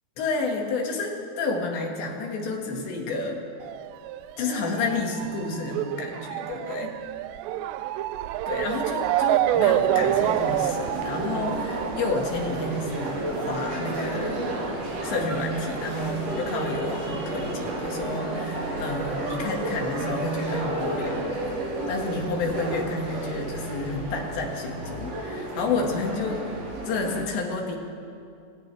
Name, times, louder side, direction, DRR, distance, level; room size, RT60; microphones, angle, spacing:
voice 1, 0.2-3.4 4.4-7.0 8.5-14.5 15.0-21.3 21.9-26.5 26.9-27.8, left 3 dB, 70° left, 1 dB, 4.3 m, -30 dB
Motor vehicle (road) / Siren, 3.6-16.6 16.9-18.1 18.7-18.8 19.1-19.2, right 13 dB, 85° right, 2.5 m, -29 dB
sound 1, 9.5-27.2, right 1 dB, 55° right, 5.4 m, -32 dB
29.0 x 26.0 x 3.5 m, 2.5 s
omnidirectional pair, 5.4 m